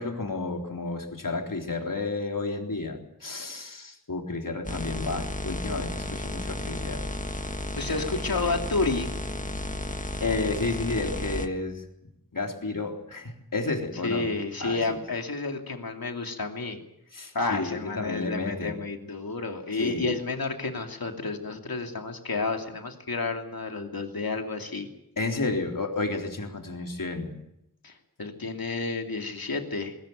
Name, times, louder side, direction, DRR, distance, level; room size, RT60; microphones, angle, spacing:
voice 1, 0.0-7.1 10.2-11.8 12.3-14.3 14.6-14.8 17.1-18.8 19.8-20.1 25.2-27.4, left 3 dB, 65° left, 2 dB, 3.8 m, -31 dB
sound 1, 4.6-11.5, left 1 dB, 20° left, 1.6 m, -33 dB
voice 2, 7.8-9.1 14.0-16.8 17.3-24.9 27.8-30.0, left 3 dB, 80° left, 4 dB, 2.9 m, -30 dB
20.5 x 18.5 x 9.2 m, 0.82 s
wide cardioid pair, 45°, 35 cm